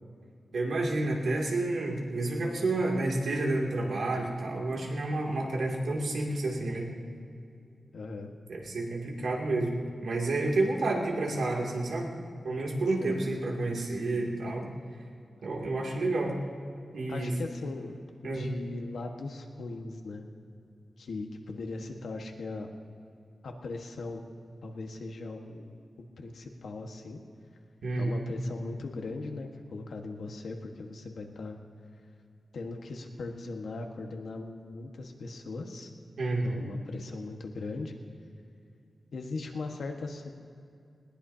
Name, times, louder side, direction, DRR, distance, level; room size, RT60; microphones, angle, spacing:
voice 1, 0.5-6.9 8.5-9.7 10.0-12.1 12.4-14.7 15.4-16.4 16.9-17.4 18.2-18.5 27.8-28.3 36.2-36.7, right 2 dB, 90° right, -2 dB, 2.6 m, -30 dB
voice 2, 7.9-8.3 13.0-13.2 17.1-18.0 18.2-20.2 21.0-22.7 23.4-24.3 24.6-27.2 28.0-31.6 32.5-35.9 36.4-37.9 39.1-40.2, left 3 dB, 80° left, 3 dB, 1.5 m, -39 dB
20.0 x 19.0 x 2.8 m, 2.5 s
wide cardioid pair, 175°, 0 cm